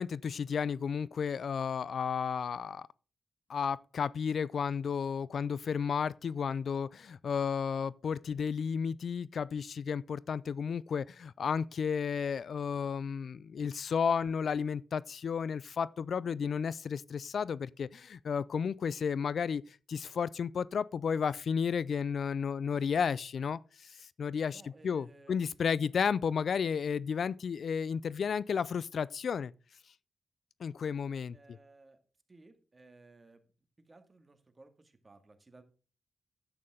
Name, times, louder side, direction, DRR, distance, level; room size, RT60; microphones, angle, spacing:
voice 1, 0.0-2.9 3.5-29.5 30.6-31.4, left 6 dB, 70° left, 0.4 m, -33 dB
voice 2, 24.4-25.5 25.8-25.9 31.3-32.0 32.3-33.5 33.8-35.6, right 2 dB, 35° right, 2.2 m, -58 dB
11.0 x 8.6 x 3.8 m
cardioid pair, 55°, 0 cm